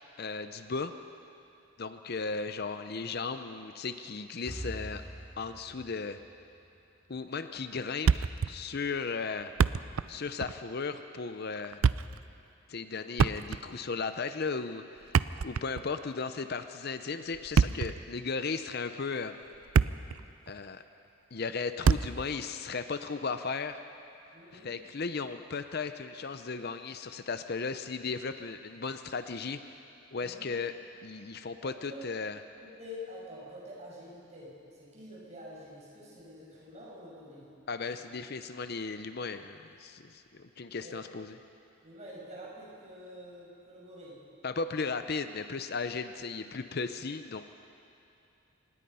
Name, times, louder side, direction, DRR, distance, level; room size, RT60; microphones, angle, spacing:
voice 1, 0.2-0.9 1.8-5.0 5.4-6.2 7.1-9.5 10.1-11.8 12.7-19.4 20.5-20.8 21.3-23.8 24.5-29.8 30.1-30.7 31.0-32.4 37.7-41.4 44.4-47.4, left 4 dB, 50° left, 9 dB, 0.6 m, -36 dB
sound 1, 4.5-7.6, right 1 dB, 30° left, 4.1 m, -44 dB
Thump thud, 8.1-8.6 8.8-8.9 9.4-10.1 10.4-10.6 11.6-12.2 13.1-13.8 15.0-15.9 17.3-18.0 18.7-18.9 19.4-20.2 20.5-20.6 21.8-22.3, right 6 dB, 80° right, 0.4 m, -26 dB
voice 2, 24.3-24.8 30.1-30.5 31.6-32.0 32.6-37.5 40.8-41.0 41.8-44.2, left 1 dB, 30° right, -5 dB, 6.3 m, -47 dB
25.5 x 19.5 x 5.6 m, 2.7 s
head